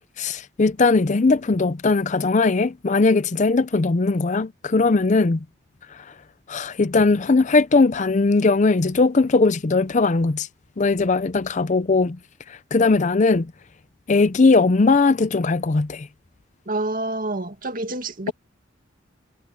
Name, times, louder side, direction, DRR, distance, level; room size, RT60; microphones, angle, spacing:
voice 1, 0.2-5.4 6.5-10.5 10.8-12.2 12.5-13.5 14.1-16.1, left 3 dB, 40° left, 0.5 m, -19 dB
voice 2, 16.7-18.3, right 2 dB, 50° right, 2.2 m, -27 dB
head